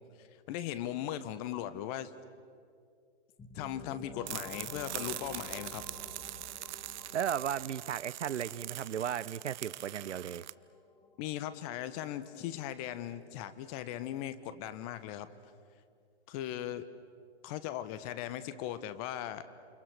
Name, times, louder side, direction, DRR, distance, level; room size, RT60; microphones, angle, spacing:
voice 1, 0.5-2.1 3.5-5.8 11.2-15.3 16.3-16.9 17.4-19.4, left 11 dB, 30° left, 13 dB, 1.3 m, -38 dB
sound 1, 3.4-13.0, left 3 dB, 10° left, 2.0 m, -52 dB
sound 2, 4.2-10.5, right 15 dB, 40° right, 0.7 m, -43 dB
voice 2, 7.1-10.4, right 9 dB, 80° right, 19 dB, 0.7 m, -35 dB
29.0 x 28.0 x 6.5 m, 2.3 s
hypercardioid pair, 125°, 35 cm